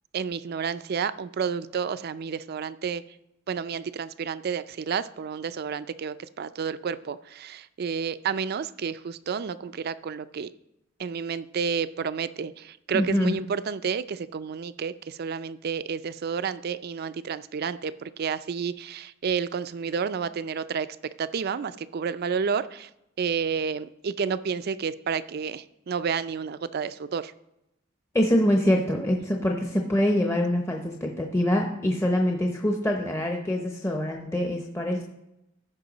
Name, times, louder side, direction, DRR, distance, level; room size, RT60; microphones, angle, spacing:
voice 1, 0.1-3.0 3.5-10.5 11.0-20.9 21.2-22.9 23.2-27.3, right 6 dB, 50° right, 15 dB, 0.4 m, -30 dB
voice 2, 12.9-13.3 28.1-35.0, equal, 15° left, 1 dB, 0.7 m, -24 dB
14.5 x 5.6 x 4.0 m, 0.86 s
head